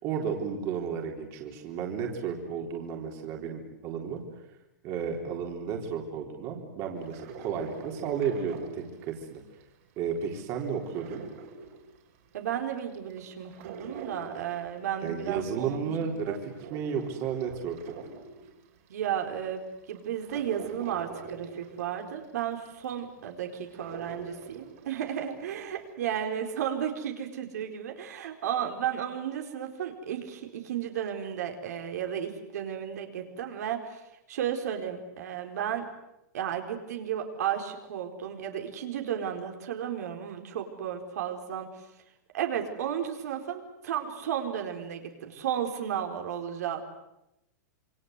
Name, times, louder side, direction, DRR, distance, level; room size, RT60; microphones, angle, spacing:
voice 1, 0.0-4.4 4.8-9.4 10.0-11.2 15.0-17.8, right 6 dB, 30° right, 1 dB, 3.8 m, -33 dB
sound 1, 7.0-9.6 10.0-12.3 12.8-15.4 15.8-18.9 19.4-19.5 19.9-25.1 25.4-25.5, right 5 dB, 50° right, 5.4 m, -44 dB
voice 2, 12.3-15.9 16.2-16.4 18.9-34.0 34.3-35.8 36.3-41.7 42.3-46.8, right 9 dB, 65° right, 4 dB, 4.2 m, -33 dB
27.5 x 25.0 x 8.2 m, 0.88 s
supercardioid pair, 165°, 9 cm